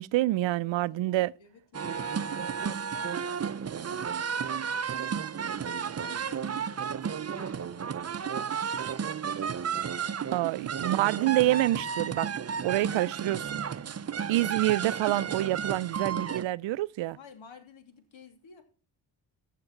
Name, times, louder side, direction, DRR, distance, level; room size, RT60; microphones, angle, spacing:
voice 1, 0.0-1.3 10.3-12.3 12.6-13.6 14.3-17.2, right 16 dB, 70° right, 0.6 m, -27 dB
voice 2, 0.7-5.8 6.0-8.6 17.1-18.6, left 6 dB, 75° left, 3.0 m, -54 dB
sound 1, 1.7-16.4, right 7 dB, 30° right, 0.7 m, -33 dB
14.5 x 6.8 x 6.0 m
supercardioid pair, 50°, 47 cm